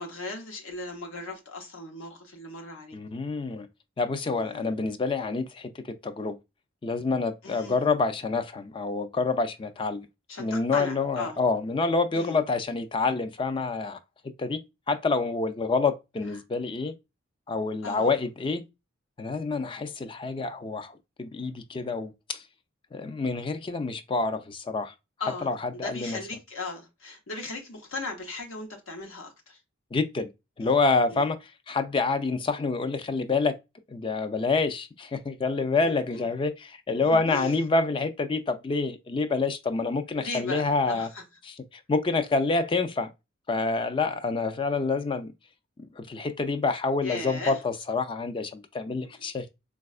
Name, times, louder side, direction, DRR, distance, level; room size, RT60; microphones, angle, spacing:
voice 1, 0.0-3.0 4.3-4.7 7.4-7.8 10.3-11.4 12.1-12.4 17.8-18.1 25.2-29.6 30.6-30.8 31.1-31.3 35.8-36.3 36.9-37.6 40.1-41.2 47.0-47.6 49.0-49.2, left 2 dB, 85° left, 0.9 m, -37 dB
voice 2, 2.9-3.7 4.0-6.4 6.8-10.1 10.4-14.0 14.4-14.6 14.9-16.9 17.5-18.6 19.2-22.4 22.9-24.9 25.4-26.2 29.9-30.3 30.6-31.4 31.7-33.5 33.9-41.1 41.4-43.1 43.5-45.3 45.8-49.5, left 3 dB, 25° left, 0.3 m, -27 dB
4.1 x 2.3 x 2.3 m
head